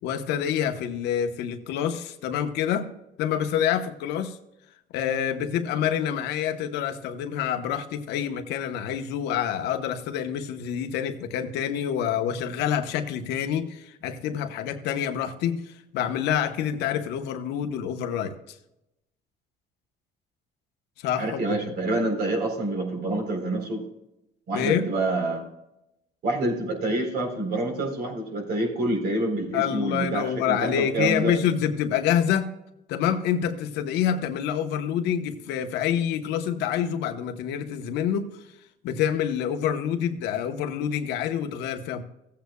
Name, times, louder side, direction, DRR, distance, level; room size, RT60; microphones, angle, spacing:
voice 1, 0.0-2.9 3.2-4.4 4.9-18.4 21.0-21.6 24.5-24.9 29.5-32.5 32.9-38.4 38.8-42.0, left 9 dB, 85° left, 7 dB, 1.1 m, -27 dB
voice 2, 21.2-23.8 24.5-25.5 26.2-31.3, right 2 dB, 70° right, 2 dB, 3.9 m, -27 dB
16.5 x 8.7 x 2.3 m, 0.87 s
cardioid pair, 110°, 17 cm